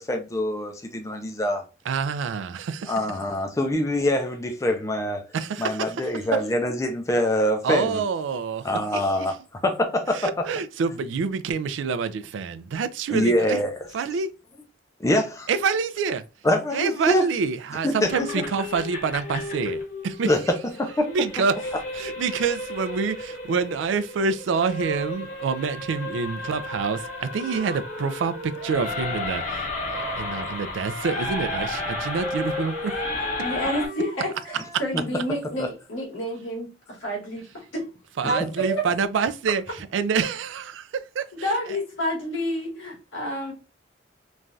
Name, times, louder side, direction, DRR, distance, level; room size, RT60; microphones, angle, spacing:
voice 1, 0.0-1.6 2.9-5.2 5.6-8.0 8.6-9.4 9.6-10.5 13.1-13.7 15.0-15.5 16.4-17.2 17.8-18.1 20.2-20.4 20.8-21.1 34.9-35.0 35.6-35.7, left 1 dB, 15° left, 0.3 m, -24 dB
voice 2, 1.9-3.0 5.3-6.1 7.6-8.7 8.9-9.3 10.1-13.6 13.9-14.3 15.5-16.2 16.7-20.3 21.1-21.5 21.9-32.9 38.2-41.8, right 5 dB, 85° right, 0.3 m, -27 dB
sound 1, 18.1-33.9, left 2 dB, 40° left, 0.9 m, -33 dB
Wind instrument woodwind instrument, 26.9-34.9, equal, 25° right, 1.0 m, -37 dB
voice 3, 33.4-37.8 38.2-38.8 41.3-43.5, equal, 90° left, 1.4 m, -29 dB
3.1 x 2.3 x 2.5 m
head